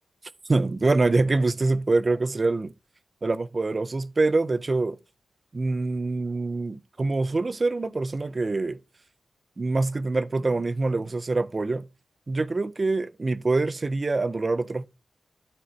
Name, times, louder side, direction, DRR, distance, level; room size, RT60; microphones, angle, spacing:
voice 1, 0.5-2.7 3.2-5.0 5.5-8.8 9.6-11.9 12.3-14.9, right 3 dB, 25° right, 0.4 m, -25 dB
12.5 x 4.2 x 3.1 m
wide cardioid pair, 165°, 0 cm